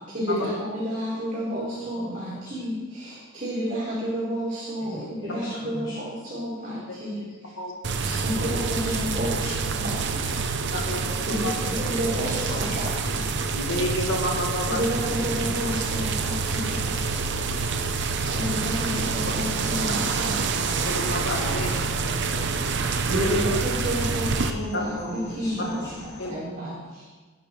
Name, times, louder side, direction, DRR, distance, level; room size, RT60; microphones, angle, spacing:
voice 1, 0.1-7.5 8.0-9.3 9.7-10.4 10.7-10.8 11.3-11.6 11.9-13.2 14.7-16.9 17.2-17.4 18.2-20.4 23.1-27.0, equal, 45° right, -8 dB, 4.4 m, -30 dB
voice 2, 1.8-2.1 2.4-2.6 4.9-6.0 8.0-9.5 11.6-12.8 15.2-15.4 15.7-16.6 18.3-19.5 19.9-20.0 21.5-23.0 25.0-25.9 26.2-26.3, equal, 25° left, -9 dB, 5.0 m, -39 dB
sound 1, 7.8-24.5, right 4 dB, 60° right, 0.8 m, -27 dB
sound 2, 11.1-26.3, left 2 dB, 60° left, 2.5 m, -45 dB
voice 3, 13.5-14.9 20.8-21.7 23.1-23.4 24.7-24.8 25.6-25.7 26.2-26.3, left 1 dB, 80° left, -1 dB, 2.0 m, -29 dB
19.0 x 12.0 x 3.3 m, 1.4 s
head